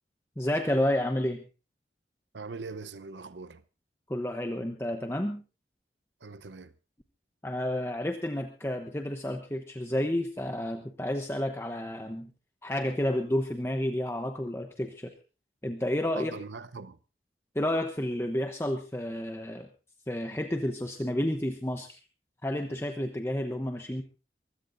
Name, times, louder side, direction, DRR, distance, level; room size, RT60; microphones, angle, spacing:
voice 1, 0.4-1.4 4.1-5.4 7.4-12.3 12.6-15.1 15.6-16.3 17.5-19.7 20.1-22.0 22.4-24.0, left 1 dB, 15° left, 0.9 m, -30 dB
voice 2, 2.3-3.6 6.2-6.7 16.1-17.0, right 4 dB, 90° right, 0.8 m, -41 dB
24.0 x 16.0 x 2.6 m
head